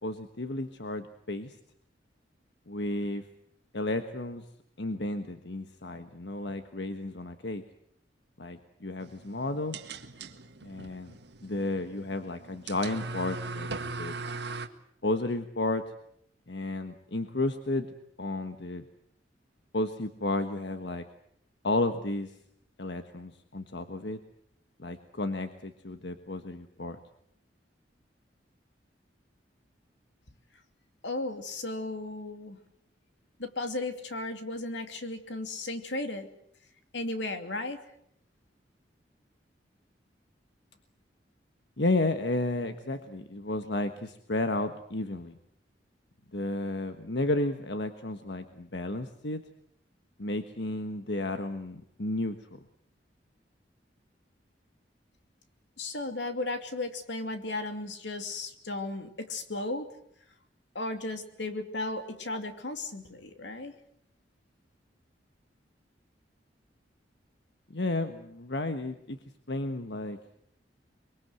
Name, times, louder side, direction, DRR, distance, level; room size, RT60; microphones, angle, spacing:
voice 1, 0.0-1.5 2.7-3.2 3.7-4.4 4.8-7.6 8.4-9.8 10.6-11.1 11.4-14.1 15.0-15.8 16.5-17.9 18.2-18.8 19.7-21.0 21.6-22.3 22.8-24.2 24.8-27.0 41.8-45.3 46.3-49.4 50.2-52.6 67.7-69.2 69.5-70.2, left 2 dB, 65° left, 8 dB, 1.4 m, -32 dB
sound 1, 9.0-14.7, right 3 dB, 65° right, 1.8 m, -40 dB
voice 2, 31.0-32.6 33.4-36.3 36.9-37.8 55.8-59.9 60.7-63.7, left 2 dB, 85° left, 7 dB, 2.7 m, -35 dB
24.0 x 23.5 x 8.0 m, 0.70 s
head